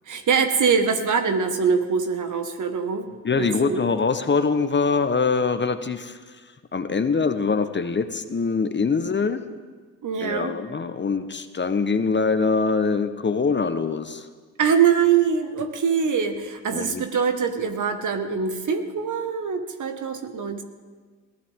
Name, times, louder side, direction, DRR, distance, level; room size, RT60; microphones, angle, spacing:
voice 1, 0.1-3.1 3.4-3.8 10.0-10.5 14.6-20.6, right 6 dB, 55° right, 7 dB, 1.8 m, -23 dB
voice 2, 3.2-6.2 6.7-9.4 10.2-14.3 16.7-17.0, left 4 dB, 30° left, 10 dB, 1.1 m, -23 dB
21.0 x 15.5 x 3.7 m, 1.5 s
hypercardioid pair, 55°, 37 cm